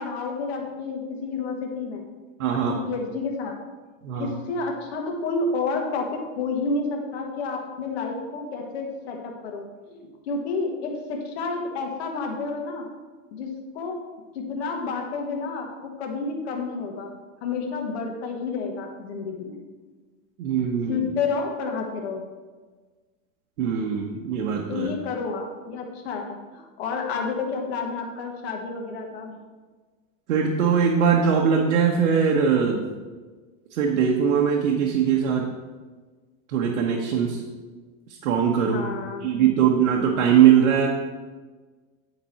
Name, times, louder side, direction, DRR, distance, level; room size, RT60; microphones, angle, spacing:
voice 1, 0.0-2.0 2.5-3.6 4.2-9.6 9.9-12.9 13.3-14.0 14.3-17.1 17.4-19.6 20.9-22.2 24.7-29.4 38.7-39.4, left 4 dB, 50° left, 2 dB, 1.5 m, -30 dB
voice 2, 2.4-2.7 4.0-4.4 20.4-21.1 23.6-24.9 30.3-32.9 33.7-35.5 36.5-37.4 38.1-38.9 39.2-40.9, right 7 dB, 80° right, 0 dB, 1.2 m, -21 dB
9.9 x 5.2 x 4.4 m, 1.4 s
supercardioid pair, 180°, 40 cm